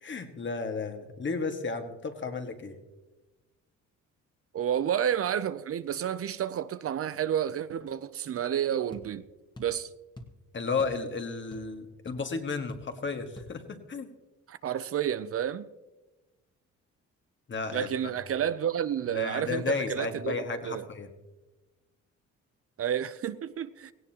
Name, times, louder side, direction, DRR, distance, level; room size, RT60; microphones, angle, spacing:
voice 1, 0.0-2.8 10.5-14.1 17.5-17.9 19.1-21.1, left 4 dB, 40° left, 1.8 m, -33 dB
voice 2, 4.5-9.3 9.6-9.9 14.5-15.7 17.7-20.8 22.8-23.9, right 9 dB, 50° right, 0.6 m, -30 dB
sound 1, 8.9-9.1 9.5-9.8 10.2-10.4 10.8-11.0 11.3-11.8 12.1-12.2 12.7-12.9 13.4-13.5, left 1 dB, 15° left, 1.6 m, -46 dB
17.5 x 16.5 x 2.9 m
cardioid pair, 90°, 30 cm